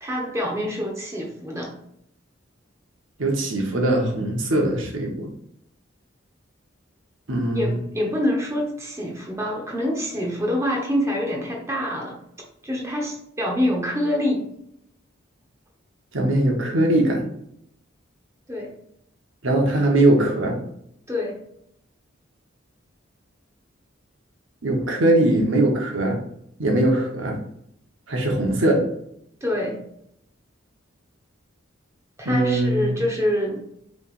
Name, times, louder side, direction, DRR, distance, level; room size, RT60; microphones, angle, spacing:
voice 1, 0.0-1.7 7.5-12.2 12.6-14.4 18.5-18.7 21.1-21.4 29.4-29.8 32.2-33.6, left 1 dB, 15° right, -1 dB, 1.1 m, -26 dB
voice 2, 3.2-5.3 7.3-7.8 16.1-17.3 19.4-20.6 24.6-26.2 26.6-27.4 28.1-28.8 32.2-33.0, right 1 dB, 70° right, 1 dB, 1.1 m, -21 dB
5.6 x 3.4 x 2.5 m, 0.72 s
head